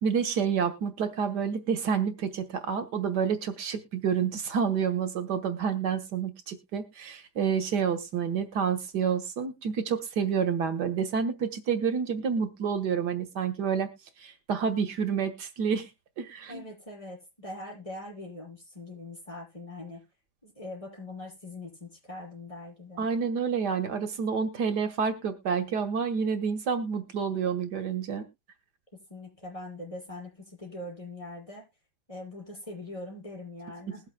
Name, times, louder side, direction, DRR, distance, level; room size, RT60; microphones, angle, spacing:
voice 1, 0.0-13.9 14.2-15.9 16.2-16.6 23.0-28.3, right 6 dB, 85° right, 7 dB, 1.9 m, -29 dB
voice 2, 16.5-20.0 20.4-23.1 29.1-31.6 32.1-34.0, left 2 dB, 20° left, -3 dB, 6.8 m, -42 dB
20.5 x 7.3 x 2.2 m, 0.24 s
omnidirectional pair, 1.7 m